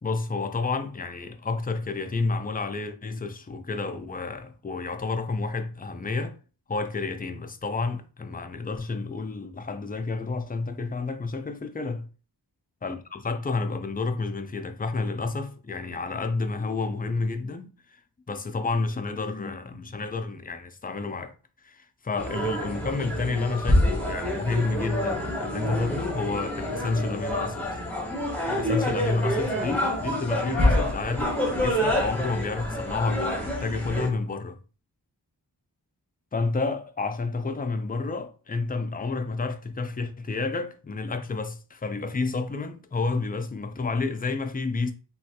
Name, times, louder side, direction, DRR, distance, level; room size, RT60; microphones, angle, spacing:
voice 1, 0.0-6.4 6.7-12.1 12.8-18.0 18.3-21.3 21.6-27.8 28.5-34.6 36.3-44.9, left 3 dB, 25° left, 0.3 m, -30 dB
sound 1, 22.2-34.1, left 1 dB, 5° left, 0.8 m, -27 dB
3.1 x 2.3 x 2.7 m
wide cardioid pair, 50°, 43 cm